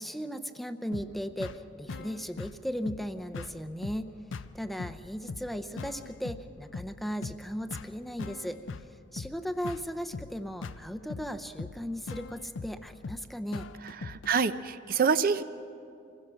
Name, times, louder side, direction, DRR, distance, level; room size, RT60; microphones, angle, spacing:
voice 1, 0.0-4.1 4.5-8.6 9.1-13.7, equal, ahead, 8 dB, 0.6 m, -36 dB
sound 1, 0.9-14.3, left 4 dB, 80° left, 0.5 m, -42 dB
voice 2, 13.8-15.4, right 5 dB, 50° right, 12 dB, 0.5 m, -27 dB
25.5 x 16.5 x 6.2 m, 2.5 s
head